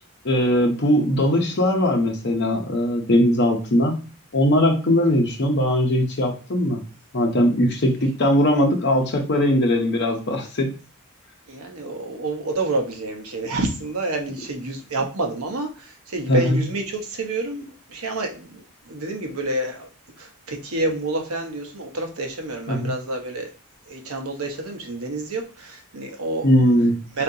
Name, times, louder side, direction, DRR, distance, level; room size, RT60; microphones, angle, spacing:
voice 1, 0.2-4.0 4.3-6.8 7.1-10.7 16.3-16.6 22.7-22.9 26.4-27.0, equal, 50° left, 2 dB, 0.8 m, -20 dB
voice 2, 11.5-19.9 20.2-23.5 23.9-26.5 27.1-27.2, right 2 dB, 75° right, 3 dB, 1.0 m, -28 dB
4.3 x 3.8 x 2.7 m, 0.35 s
head